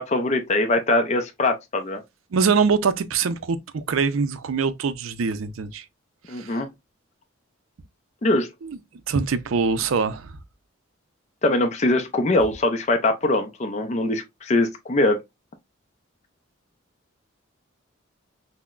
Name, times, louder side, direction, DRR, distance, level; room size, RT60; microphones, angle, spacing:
voice 1, 0.0-2.0 6.3-6.7 8.2-8.5 11.4-15.2, left 2 dB, 35° left, 0.5 m, -22 dB
voice 2, 2.3-5.8 6.3-6.6 8.6-8.8 9.1-10.3, right 5 dB, 80° right, 0.5 m, -23 dB
5.7 x 2.1 x 2.4 m
head